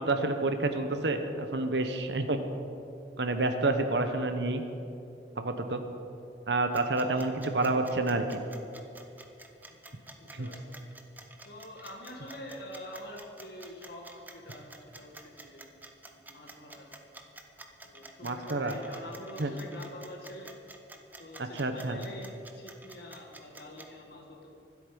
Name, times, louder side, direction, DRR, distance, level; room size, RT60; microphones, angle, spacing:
voice 1, 0.0-2.4 3.2-4.6 5.4-5.8 6.5-8.4 10.3-10.5 18.2-18.8 19.4-19.5 21.5-22.0, right 2 dB, 80° right, 7 dB, 1.1 m, -29 dB
sound 1, 6.7-23.9, right 2 dB, 10° right, 0.9 m, -49 dB
voice 2, 7.0-7.4 9.7-9.8 10.2-10.7 11.5-15.6 16.0-16.9 17.8-20.5 21.2-24.5, left 1 dB, 60° left, -1 dB, 2.0 m, -46 dB
25.0 x 8.3 x 5.3 m, 2.7 s
head